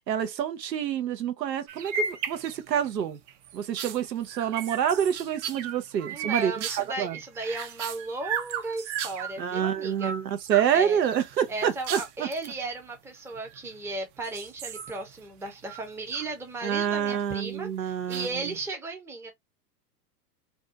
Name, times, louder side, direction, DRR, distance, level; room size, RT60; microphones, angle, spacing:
voice 1, 0.1-3.2 3.5-7.2 9.4-12.3 16.6-18.5, right 9 dB, 85° right, 0.7 m, -27 dB
sound 1, 1.7-2.9 3.3-9.4 9.8-10.7 11.0-12.5 13.3-13.9 14.2-16.3 16.6-17.2 18.1-18.6, right 7 dB, 45° right, 0.6 m, -36 dB
voice 2, 6.1-10.1 10.7-11.0 11.5-19.3, right 3 dB, 5° right, 0.5 m, -35 dB
2.6 x 2.3 x 2.7 m
hypercardioid pair, 100°, 49 cm